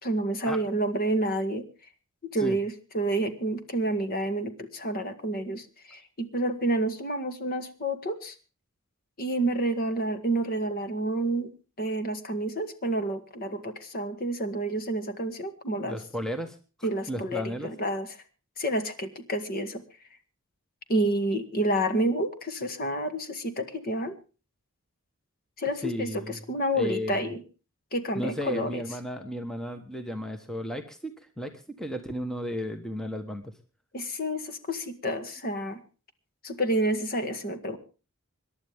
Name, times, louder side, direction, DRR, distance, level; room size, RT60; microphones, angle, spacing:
voice 1, 0.0-1.6 2.3-8.3 9.2-11.5 11.8-16.0 16.8-18.1 18.6-19.8 20.9-24.2 25.6-27.4 27.9-28.8 33.9-35.8 36.4-37.8, right 1 dB, 40° left, 8 dB, 1.8 m, -29 dB
voice 2, 15.8-17.7 25.8-27.3 28.1-33.5, equal, 5° left, 6 dB, 1.2 m, -34 dB
26.5 x 11.5 x 3.5 m, 0.34 s
head